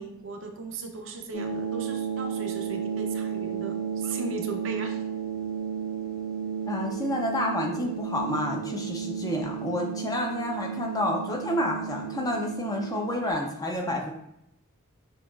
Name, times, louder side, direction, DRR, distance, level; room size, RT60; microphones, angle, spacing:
voice 1, 0.0-5.0, right 3 dB, 60° right, 3 dB, 0.6 m, -37 dB
sound 1, 1.3-13.3, right 7 dB, 70° left, 1.2 m, -33 dB
voice 2, 6.7-14.1, left 1 dB, 15° left, 1 dB, 0.5 m, -29 dB
6.2 x 2.8 x 2.3 m, 0.79 s
head